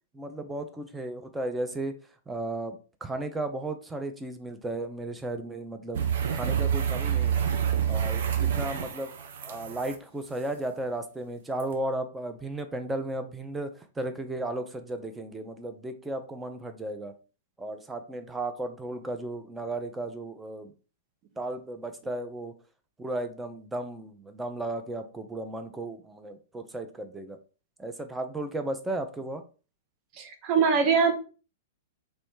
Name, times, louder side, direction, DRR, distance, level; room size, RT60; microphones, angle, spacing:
voice 1, 0.1-2.0 2.3-6.0 6.3-7.5 7.9-9.1 9.4-17.1 17.6-20.7 21.4-22.5 23.0-27.4 27.8-29.4, right 2 dB, 10° right, 6 dB, 0.6 m, -35 dB
sound 1, 5.9-9.9 11.6-11.7, right 8 dB, 55° right, 0.6 m, -27 dB
voice 2, 30.2-31.1, right 6 dB, 35° right, 4 dB, 0.9 m, -22 dB
3.1 x 3.1 x 4.6 m, 0.36 s
figure-of-eight pair, 105°, 0 cm